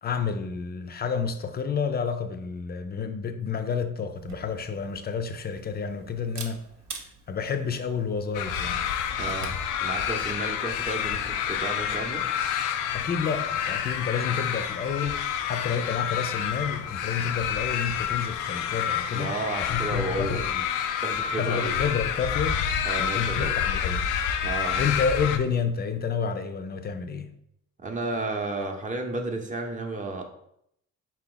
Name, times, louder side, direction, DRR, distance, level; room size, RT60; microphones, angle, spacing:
voice 1, 0.0-6.6 7.3-8.9 12.9-19.3 19.6-20.6 21.4-22.7 23.0-24.0 24.8-27.3, left 6 dB, 35° left, 0.5 m, -30 dB
Camera, 4.1-9.7, right 4 dB, 65° right, 0.8 m, -44 dB
sound 1, 8.3-25.4, left 9 dB, 85° left, 0.5 m, -29 dB
voice 2, 9.2-9.5 9.8-12.2 19.1-20.4 21.0-21.7 22.8-23.5 24.4-24.8 27.8-30.2, right 2 dB, 25° right, 0.7 m, -32 dB
4.1 x 2.9 x 3.9 m
cardioid pair, 90°, 30 cm